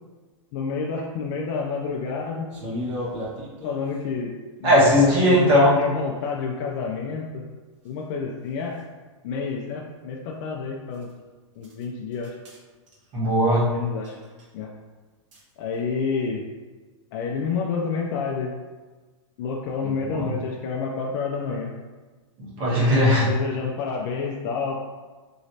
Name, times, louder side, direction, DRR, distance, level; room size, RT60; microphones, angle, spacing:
voice 1, 0.5-2.5 3.6-4.3 4.6-7.5 7.8-8.7 9.2-11.1 11.6-12.4 13.6-14.2 14.5-14.7 15.6-16.5 17.1-18.5 19.4-21.7 23.1-24.8, left 5 dB, 45° left, -1 dB, 0.4 m, -29 dB
sound 1, 2.5-4.0 7.8-7.9 8.8-8.9 10.9-11.1 11.6-11.8 12.1-12.6 12.9-13.1 14.0-14.5 15.3-15.5, left 1 dB, 70° right, 1.2 m, -34 dB
voice 2, 4.6-5.8 13.1-13.7 19.8-20.3 22.4-23.3, equal, 30° right, -7 dB, 1.3 m, -18 dB
3.1 x 3.0 x 2.7 m, 1.3 s
hypercardioid pair, 145°, 17 cm